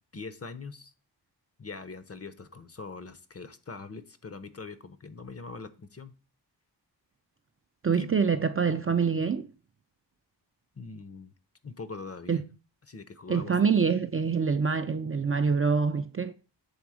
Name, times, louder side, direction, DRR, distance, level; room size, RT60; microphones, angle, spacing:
voice 1, 0.1-0.9 1.6-6.1 7.9-8.1 10.7-11.3 11.6-12.4 12.9-13.6, left 4 dB, 35° left, 0.7 m, -42 dB
voice 2, 7.8-9.5 12.3-12.4 13.3-16.3, right 5 dB, 35° right, 0.4 m, -25 dB
7.1 x 3.5 x 4.8 m
wide cardioid pair, 70°, 43 cm